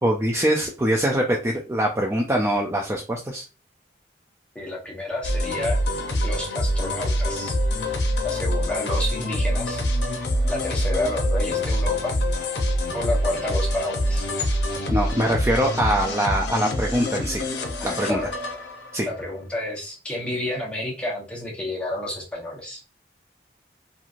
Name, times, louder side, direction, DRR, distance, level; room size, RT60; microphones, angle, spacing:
voice 1, 0.0-3.4 14.9-17.4 17.8-18.2 18.9-19.1, right 1 dB, 15° right, 0 dB, 0.3 m, -23 dB
voice 2, 4.5-5.8 6.2-7.6 8.2-9.8 10.5-12.1 12.9-14.3 17.8-18.3 19.0-22.8, left 1 dB, 5° left, -4 dB, 1.0 m, -30 dB
sound 1, 5.2-19.1, left 1 dB, 85° left, 0.6 m, -25 dB
3.0 x 2.5 x 2.4 m, 0.31 s
head